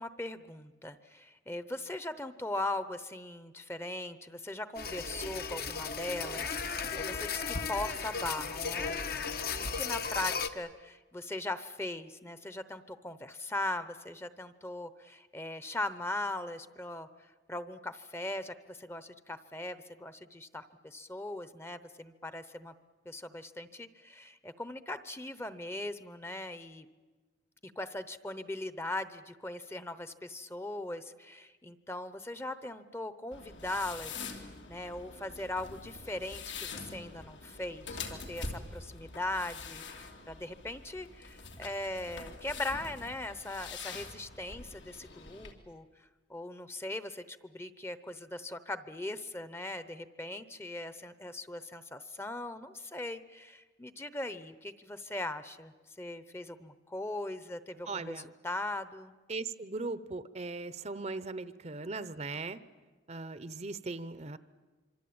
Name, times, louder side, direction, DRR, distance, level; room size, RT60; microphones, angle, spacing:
voice 1, 0.0-9.1 9.5-17.1 17.5-22.7 23.0-26.9 27.6-34.3 34.7-38.0 38.3-45.8 46.3-59.1, left 1 dB, 15° left, 12 dB, 0.8 m, -39 dB
sound 1, 4.8-10.5, left 5 dB, 55° left, 1.2 m, -35 dB
sound 2, 33.3-45.5, left 4 dB, 80° left, 3.1 m, -45 dB
voice 2, 57.9-58.3 59.3-62.6 63.1-64.4, right 3 dB, 35° right, 14 dB, 0.7 m, -39 dB
26.0 x 24.5 x 8.7 m, 1.3 s
head